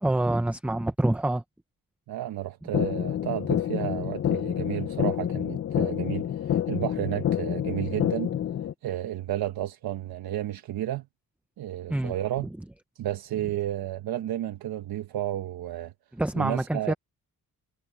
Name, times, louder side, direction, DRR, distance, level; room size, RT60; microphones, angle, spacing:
voice 1, 0.0-1.4 11.9-12.1 16.1-16.9, right 1 dB, 5° right, 0.6 m, -26 dB
voice 2, 2.1-8.3 8.8-11.1 11.6-12.5 12.9-15.9 16.4-16.9, right 12 dB, 80° right, 1.1 m, -32 dB
sound 1, 2.7-8.7, left 10 dB, 45° left, 0.6 m, -28 dB
wide cardioid pair, 155°, 36 cm